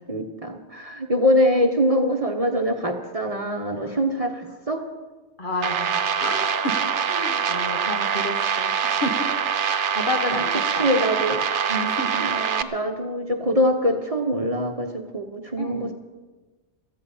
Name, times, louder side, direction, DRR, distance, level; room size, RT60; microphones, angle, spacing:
voice 1, 0.1-4.8 10.3-10.4 10.8-11.4 12.2-15.9, equal, 35° right, 3 dB, 1.2 m, -23 dB
voice 2, 5.4-9.3 9.5-10.9 11.7-12.2 15.6-15.9, left 1 dB, 45° left, 3 dB, 1.8 m, -31 dB
sound 1, 5.6-12.6, right 7 dB, 85° right, 1.1 m, -24 dB
17.0 x 14.0 x 5.6 m, 1.3 s
omnidirectional pair, 1.2 m